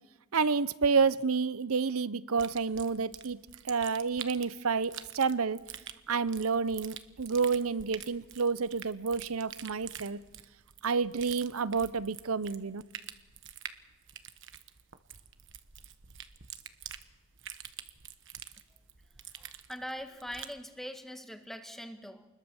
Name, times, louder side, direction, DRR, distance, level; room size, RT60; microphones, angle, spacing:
voice 1, 0.3-3.4 3.6-5.6 6.1-10.2 10.8-12.8, right 5 dB, 85° right, 0.8 m, -29 dB
sound 1, 2.4-20.6, right 10 dB, 60° right, 1.2 m, -47 dB
voice 2, 19.3-22.3, equal, ahead, 1.7 m, -42 dB
28.5 x 21.0 x 7.1 m
head